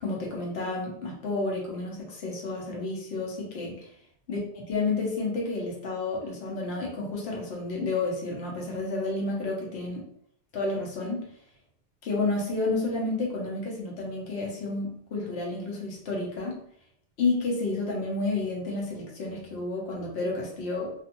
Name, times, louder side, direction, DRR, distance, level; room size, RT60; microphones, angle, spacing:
voice 1, 0.0-3.9 4.3-4.4 4.7-10.0 10.5-11.3 12.0-16.6 17.2-20.9, left 3 dB, 65° left, -2 dB, 1.1 m, -30 dB
2.5 x 2.3 x 2.9 m, 0.69 s
omnidirectional pair, 1.2 m